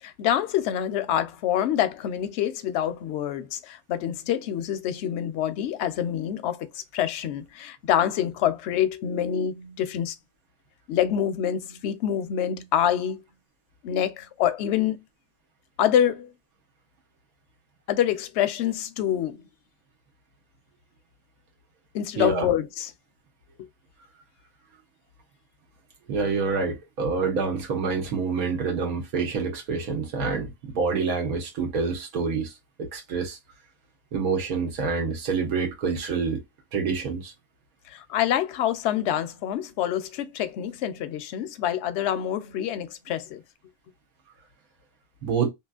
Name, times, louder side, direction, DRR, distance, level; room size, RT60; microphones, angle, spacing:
voice 1, 0.0-10.2 10.9-13.2 13.8-15.0 15.8-16.3 17.9-19.5 21.9-22.9 37.9-43.4, left 10 dB, 65° left, 0.7 m, -26 dB
voice 2, 22.2-22.5 26.1-32.5 32.8-33.4 34.1-36.4 36.7-37.3 45.2-45.5, right 5 dB, 85° right, 1.5 m, -27 dB
3.0 x 2.8 x 2.3 m
omnidirectional pair, 1.5 m